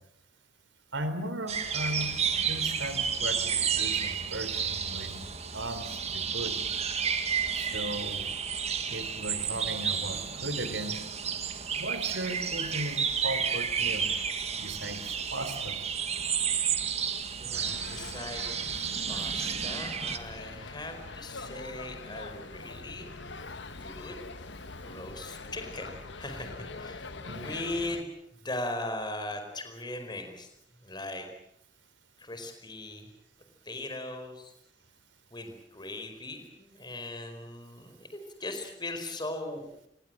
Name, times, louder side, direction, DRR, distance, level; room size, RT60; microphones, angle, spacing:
voice 1, 0.9-2.1 2.5-5.2 5.5-6.6 7.5-8.3 8.9-11.0 11.8-14.1 14.6-15.8 27.2-27.5, right 1 dB, 85° right, 11 dB, 3.9 m, -36 dB
sound 1, 1.5-20.2, right 7 dB, 35° right, 1.9 m, -31 dB
voice 2, 17.4-18.5 19.1-23.1 23.7-24.2 24.8-25.9 26.2-28.1 28.4-30.5 30.8-31.3 32.2-33.1 33.6-34.5 35.3-39.6, left 2 dB, 25° left, 6 dB, 4.7 m, -39 dB
sound 2, 17.5-28.0, left 3 dB, 70° left, 1.6 m, -43 dB
27.0 x 21.5 x 7.7 m, 0.77 s
head